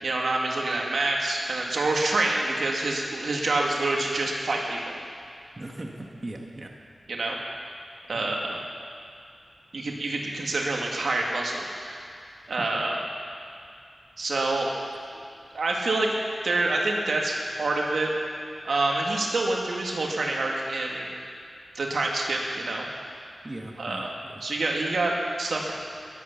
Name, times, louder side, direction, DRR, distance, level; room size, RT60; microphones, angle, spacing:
voice 1, 0.0-5.0 7.1-7.4 8.1-8.6 9.7-12.0 12.5-13.0 14.2-14.7 15.5-16.2 16.4-18.1 18.6-21.1 21.7-22.9 23.8-24.1 24.4-25.7, right 2 dB, 80° right, -1 dB, 2.1 m, -27 dB
voice 2, 5.5-6.7 8.1-8.3 12.6-12.7 23.4-24.4, right 1 dB, 35° right, 0 dB, 1.5 m, -39 dB
20.5 x 8.4 x 7.1 m, 2.5 s
wide cardioid pair, 80°, 0 cm